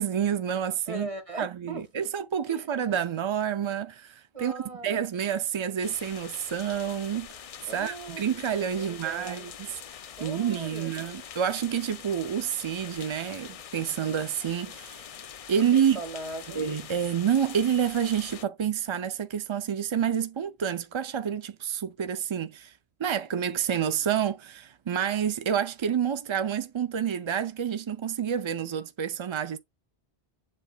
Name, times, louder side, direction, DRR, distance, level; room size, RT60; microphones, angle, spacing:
voice 1, 0.0-1.1 1.4-4.5 4.8-7.3 7.7-9.8 10.2-15.1 15.5-16.0 16.5-22.7 23.0-29.6, right 8 dB, 50° right, 0.3 m, -28 dB
voice 2, 0.9-2.1 2.5-2.7 4.3-5.0 7.7-8.2 8.8-9.5 10.2-11.2 15.7-16.6, right 2 dB, 30° right, 1.6 m, -39 dB
sound 1, 5.8-18.4, left 8 dB, 55° left, 0.4 m, -44 dB
7.4 x 7.2 x 2.2 m
omnidirectional pair, 1.1 m